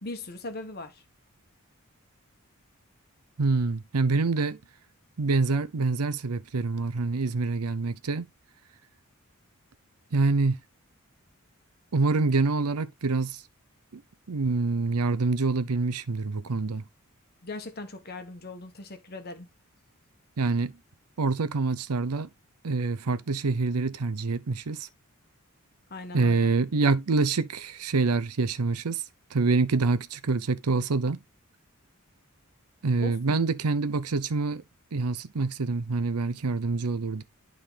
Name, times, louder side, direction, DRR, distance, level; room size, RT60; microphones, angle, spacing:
voice 1, 0.0-1.0 17.4-19.5 25.9-26.5 33.0-33.4, left 2 dB, 45° left, 1.3 m, -39 dB
voice 2, 3.4-4.6 5.2-8.3 10.1-10.6 11.9-13.4 13.9-14.0 14.3-16.8 20.4-20.7 21.2-22.3 22.6-24.9 26.1-29.0 29.3-31.2 32.8-34.6 34.9-37.2, right 3 dB, 90° right, 0.7 m, -26 dB
11.5 x 3.8 x 3.4 m
head